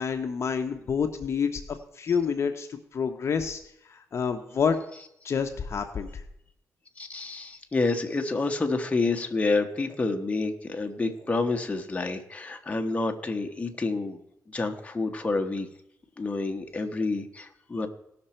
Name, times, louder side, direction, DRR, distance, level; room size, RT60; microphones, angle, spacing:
voice 1, 0.0-3.6 3.9-4.8 5.2-6.2, left 6 dB, 50° left, 6 dB, 0.9 m, -28 dB
voice 2, 7.0-14.2 14.5-15.7 16.2-17.9, left 3 dB, 20° left, 4 dB, 1.2 m, -28 dB
18.0 x 6.1 x 4.4 m, 0.76 s
cardioid pair, 90°, 6 cm